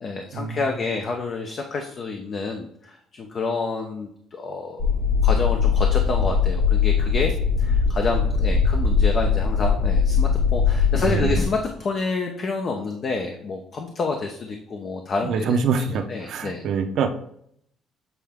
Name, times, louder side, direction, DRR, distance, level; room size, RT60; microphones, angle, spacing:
voice 1, 0.0-4.9 5.2-7.3 7.6-15.5 15.8-16.7, left 4 dB, 40° left, 3 dB, 0.8 m, -28 dB
sound 1, 4.8-11.4, left 5 dB, 85° left, 2.2 m, -20 dB
voice 2, 10.9-11.4 15.2-17.1, right 5 dB, 60° right, 5 dB, 0.9 m, -25 dB
8.2 x 4.3 x 3.6 m, 0.69 s
cardioid pair, 125°, 0 cm